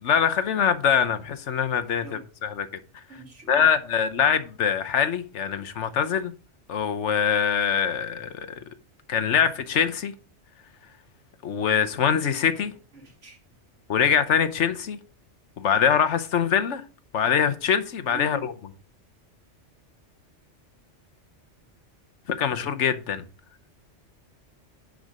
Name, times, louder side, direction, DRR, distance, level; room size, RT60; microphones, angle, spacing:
voice 1, 0.0-2.7 3.5-6.3 6.7-8.5 9.1-10.1 11.4-12.7 13.9-15.0 15.6-16.8 17.1-18.5 22.4-23.2, left 7 dB, 75° left, 1.2 m, -23 dB
voice 2, 3.1-3.7 12.9-13.4 18.1-18.4, left 1 dB, 80° right, 2.5 m, -41 dB
10.5 x 4.9 x 4.9 m
omnidirectional pair, 1.2 m